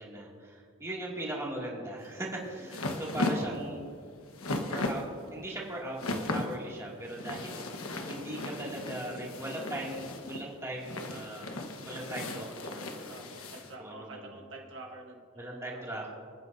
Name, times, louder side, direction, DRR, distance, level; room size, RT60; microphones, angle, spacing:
voice 1, 0.0-3.9 4.7-5.0 5.3-13.2 13.8-14.2 15.4-16.1, right 1 dB, 15° right, -4 dB, 2.4 m, -39 dB
sound 1, 2.0-13.7, left 2 dB, 90° left, 1.3 m, -37 dB
voice 2, 13.1-15.8, right 2 dB, 60° right, 0 dB, 1.4 m, -47 dB
26.5 x 9.6 x 2.7 m, 2.2 s
head